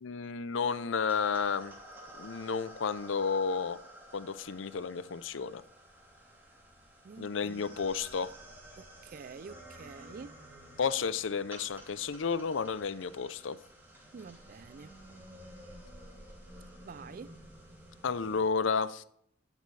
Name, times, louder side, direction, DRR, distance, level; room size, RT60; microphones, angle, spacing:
voice 1, 0.0-1.7 2.2-3.8 4.1-5.6 7.2-8.3 10.8-13.6 18.0-19.0, left 5 dB, 75° left, 0.5 m, -32 dB
sound 1, 1.1-18.5, right 1 dB, 10° right, 2.8 m, -52 dB
voice 2, 7.0-7.6 8.8-10.4 14.1-14.9 16.8-17.3, right 5 dB, 45° right, 0.4 m, -47 dB
12.0 x 8.4 x 3.3 m
head